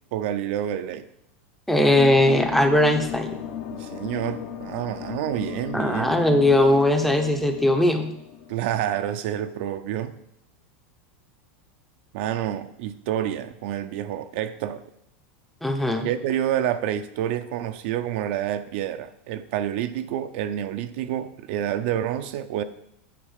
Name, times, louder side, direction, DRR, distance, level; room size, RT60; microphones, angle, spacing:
voice 1, 0.1-1.1 3.7-6.1 6.4-6.5 8.5-10.1 12.1-14.8 16.0-22.6, right 11 dB, 55° right, 10 dB, 0.6 m, -28 dB
voice 2, 1.7-3.3 5.7-8.1 15.6-16.1, left 1 dB, 5° left, 5 dB, 0.7 m, -19 dB
sound 1, 2.0-9.0, left 10 dB, 55° left, 1.0 m, -36 dB
9.2 x 4.7 x 6.6 m, 0.76 s
supercardioid pair, 160°, 7 cm